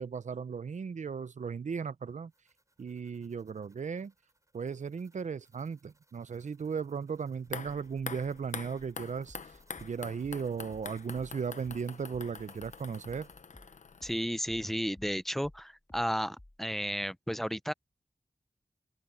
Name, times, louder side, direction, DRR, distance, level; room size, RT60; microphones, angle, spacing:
voice 1, 0.0-2.3 2.8-4.1 4.5-9.4 9.8-13.3, right 6 dB, 80° right, 0.5 m, -36 dB
sound 1, 2.1-13.4, right 1 dB, 25° right, 6.6 m, -68 dB
sound 2, 7.4-14.5 14.8-14.9, left 5 dB, 85° left, 0.8 m, -45 dB
sound 3, 9.3-14.2 14.5-16.7, left 1 dB, 20° left, 2.4 m, -55 dB
voice 2, 14.0-17.7, equal, ahead, 0.7 m, -33 dB
wide cardioid pair, 70°, 12 cm